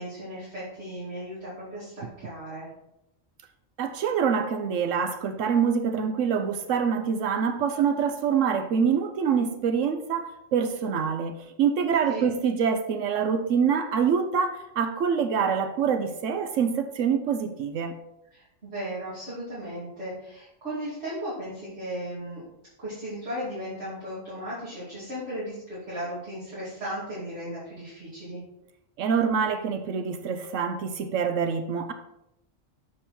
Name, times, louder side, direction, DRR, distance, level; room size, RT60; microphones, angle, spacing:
voice 1, 0.0-2.7 12.1-12.2 18.3-22.5 22.8-28.4, equal, 55° right, -12 dB, 3.1 m, -36 dB
voice 2, 3.8-17.9 29.0-31.9, right 6 dB, 80° right, 8 dB, 1.0 m, -25 dB
7.1 x 5.4 x 4.2 m, 0.86 s
omnidirectional pair, 1.3 m